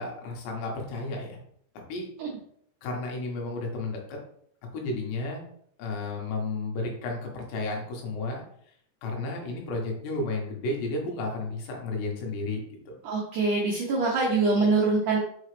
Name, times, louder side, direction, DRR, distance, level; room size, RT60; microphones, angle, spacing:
voice 1, 0.0-1.4 1.9-2.1 2.8-4.2 4.7-5.4 5.8-8.4 9.0-13.0, left 2 dB, 80° left, 0 dB, 3.5 m, -32 dB
voice 2, 13.0-15.2, right 3 dB, 75° right, -3 dB, 1.8 m, -24 dB
5.7 x 5.5 x 3.2 m, 0.66 s
omnidirectional pair, 4.9 m